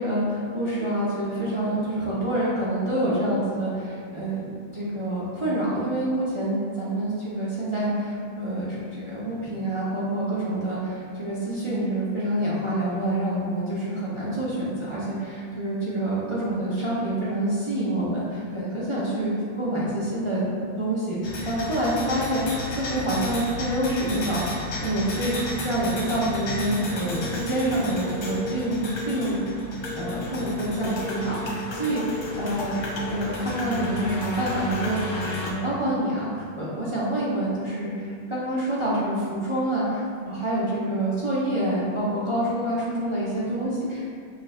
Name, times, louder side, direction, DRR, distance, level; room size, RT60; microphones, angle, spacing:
voice 1, 0.0-4.4 4.7-20.5 20.8-29.4 29.9-32.8 33.1-35.0 35.4-44.0, right 1 dB, 30° right, -9 dB, 0.6 m, -27 dB
sound 1, 21.2-35.5, left 1 dB, 85° left, 1.3 m, -32 dB
6.4 x 2.5 x 3.3 m, 2.2 s
omnidirectional pair, 1.6 m